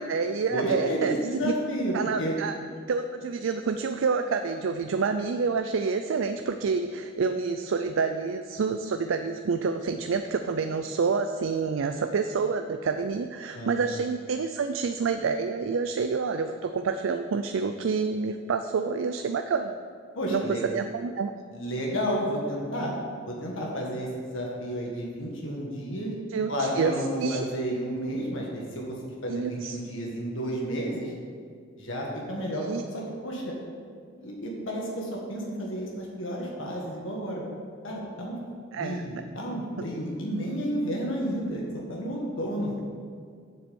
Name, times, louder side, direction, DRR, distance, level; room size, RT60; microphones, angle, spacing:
voice 1, 0.0-1.2 1.4-1.5 1.9-2.6 2.9-19.8 20.3-20.4 20.7-21.3 26.3-26.9 27.2-27.5 29.3-29.8 32.5-32.8 38.7-39.0, right 5 dB, 90° right, 7 dB, 0.4 m, -28 dB
voice 2, 0.5-2.4 13.5-13.9 20.1-20.6 21.5-22.9 23.2-26.1 26.5-31.1 31.8-32.6 32.9-33.5 34.2-37.4 37.8-38.4 38.8-42.7, equal, 80° left, -2 dB, 1.7 m, -31 dB
7.8 x 6.9 x 6.9 m, 2.1 s
head